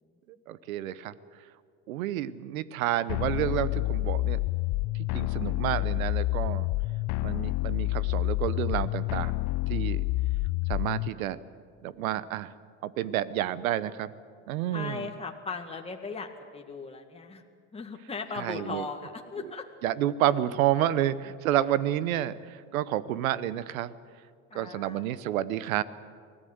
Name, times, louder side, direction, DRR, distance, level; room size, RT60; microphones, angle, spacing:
voice 1, 0.5-1.1 1.9-4.4 5.1-6.7 7.2-9.3 9.7-10.0 10.7-11.4 11.8-12.5 12.8-14.1 14.5-15.1 18.4-18.8 19.8-23.9 24.5-25.8, right 12 dB, 90° right, 17 dB, 0.9 m, -29 dB
sound 1, 3.1-11.1, left 20 dB, 50° left, 0.5 m, -28 dB
voice 2, 14.7-17.4 17.7-19.6 24.5-25.0, left 4 dB, 15° left, 2 dB, 1.9 m, -38 dB
24.0 x 17.0 x 8.0 m, 2.1 s
supercardioid pair, 90°, 40 cm